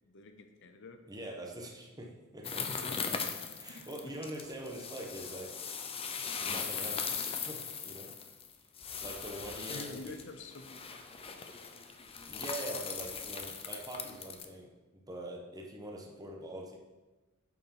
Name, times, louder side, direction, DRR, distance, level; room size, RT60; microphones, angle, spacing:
voice 1, 0.0-1.0 2.7-3.0 3.7-4.1 9.7-11.0 11.3-11.8, left 3 dB, 60° left, 7 dB, 0.7 m, -49 dB
voice 2, 1.1-2.8 3.1-3.2 3.5-5.5 6.4-8.1 9.0-10.2 12.3-16.8, right 1 dB, 20° right, 0 dB, 1.1 m, -44 dB
sound 1, 2.4-14.5, left 6 dB, 25° left, 0.6 m, -39 dB
8.1 x 4.7 x 5.7 m, 1.2 s
head